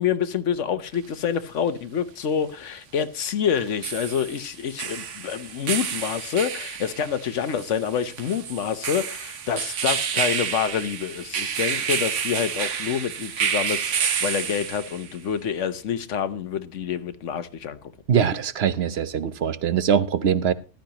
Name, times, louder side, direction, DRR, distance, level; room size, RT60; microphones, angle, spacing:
voice 1, 0.0-17.9, left 8 dB, 80° left, 1.2 m, -27 dB
sound 1, 0.9-1.0 3.6-15.2, right 7 dB, 80° right, 1.3 m, -29 dB
voice 2, 18.1-20.5, right 8 dB, 65° right, 1.0 m, -22 dB
14.5 x 12.0 x 2.9 m
omnidirectional pair, 1.2 m